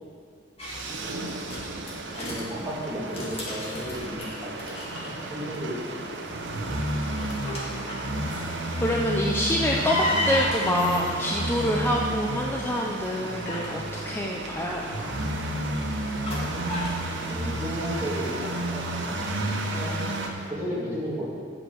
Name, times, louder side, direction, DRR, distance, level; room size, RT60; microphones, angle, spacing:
sound 1, 0.6-2.4 2.9-5.6 5.9-6.3 6.8-8.6 9.3-12.2 12.8-17.0, left 1 dB, 35° left, 2.1 m, -34 dB
sound 2, 0.6-20.3, right 1 dB, 90° right, 1.1 m, -32 dB
sound 3, 0.9-20.5, right 2 dB, 65° right, 0.8 m, -39 dB
voice 1, 2.1-5.8 6.1-6.2 16.3-17.0 17.3-19.2 19.7-20.0 20.4-21.3, equal, 15° right, -6 dB, 2.5 m, -34 dB
voice 2, 8.8-15.2, equal, 10° left, -1 dB, 0.6 m, -27 dB
8.0 x 6.5 x 7.9 m, 2.2 s
head